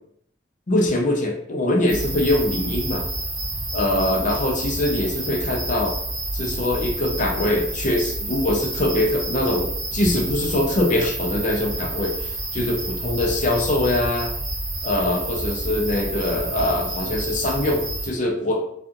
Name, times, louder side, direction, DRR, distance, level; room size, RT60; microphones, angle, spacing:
voice 1, 0.7-3.0 3.7-6.0 6.3-14.3 14.8-18.6, left 1 dB, 45° left, 1 dB, 0.5 m, -23 dB
sound 1, 1.9-18.1, right 2 dB, 10° right, 1.3 m, -29 dB
2.5 x 2.4 x 2.5 m, 0.69 s
head